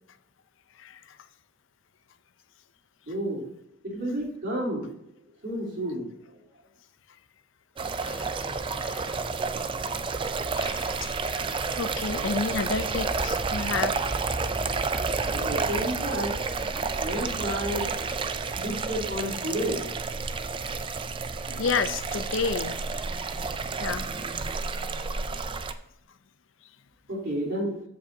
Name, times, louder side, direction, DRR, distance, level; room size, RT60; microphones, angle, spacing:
voice 1, 0.7-1.2 8.0-8.4 8.6-9.3 10.5-14.0 21.4-22.8 23.8-24.1, left 5 dB, 65° left, 12 dB, 0.5 m, -31 dB
voice 2, 3.1-3.5 3.8-4.9 5.4-6.1 15.3-19.8 27.1-27.7, equal, 55° right, -6 dB, 3.4 m, -31 dB
sound 1, 7.8-25.7, right 4 dB, 25° right, 0.3 m, -30 dB
13.5 x 5.3 x 2.7 m, 0.83 s
head